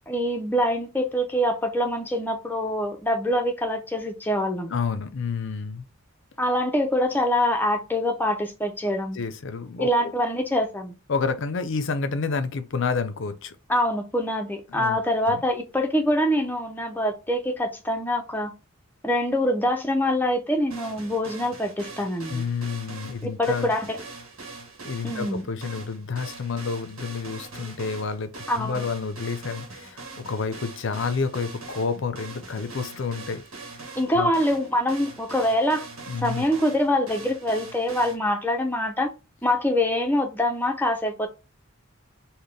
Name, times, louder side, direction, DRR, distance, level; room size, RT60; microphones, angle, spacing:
voice 1, 0.1-4.7 6.4-9.2 9.8-10.9 13.7-18.5 19.0-22.4 23.2-24.0 25.0-25.4 28.5-28.9 34.0-35.8 36.2-39.1 39.4-41.3, left 1 dB, 10° left, 0.5 m, -24 dB
voice 2, 4.7-5.9 9.1-10.1 11.1-13.5 14.7-15.0 15.3-15.4 22.3-23.8 24.8-33.4 34.1-34.3 36.1-36.4, left 5 dB, 60° left, 0.5 m, -29 dB
sound 1, 20.7-38.2, right 3 dB, 75° right, 1.1 m, -42 dB
4.0 x 2.2 x 3.3 m
head